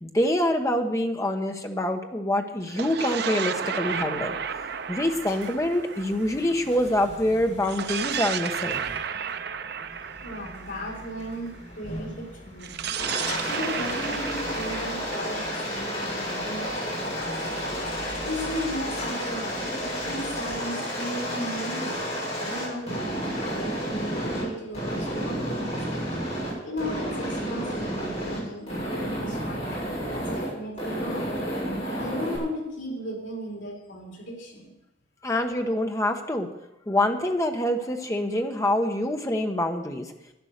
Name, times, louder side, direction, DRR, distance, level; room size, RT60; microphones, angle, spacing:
voice 1, 0.0-4.4 4.9-8.8 35.2-36.5 36.9-40.1, left 1 dB, 15° left, 4 dB, 1.1 m, -25 dB
sound 1, 2.6-7.0 7.6-11.6 12.6-16.4, right 7 dB, 55° right, 0.6 m, -33 dB
sound 2, 3.8-20.6, left 1 dB, 60° left, 4.4 m, -44 dB
voice 2, 10.2-12.7 13.5-17.5 18.2-25.8 26.6-31.4 31.9-34.7, equal, 75° left, -1 dB, 4.4 m, -36 dB
Aircraft, 13.0-24.4 24.7-26.5 26.8-28.4 28.7-30.5 30.8-32.4, equal, 35° left, 6.5 m, -31 dB
11.5 x 11.0 x 6.7 m, 0.90 s
head